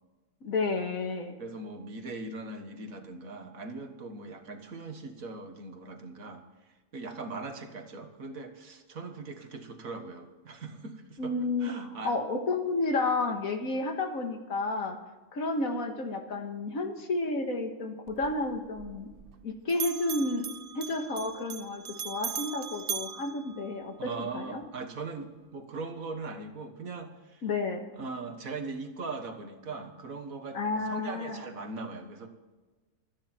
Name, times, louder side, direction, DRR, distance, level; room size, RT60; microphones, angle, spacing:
voice 1, 0.4-1.3 11.2-11.7 12.0-15.0 15.3-19.1 19.4-20.5 20.7-24.6 27.4-27.9 30.5-31.4, left 3 dB, 80° left, 5 dB, 2.1 m, -31 dB
voice 2, 1.4-6.4 6.9-12.2 24.0-27.5 27.9-32.3, right 3 dB, 80° right, 6 dB, 2.0 m, -40 dB
Bell, 18.1-19.4 19.7-24.2, right 8 dB, 50° right, 0.8 m, -39 dB
26.0 x 9.9 x 4.5 m, 1.2 s
omnidirectional pair, 1.4 m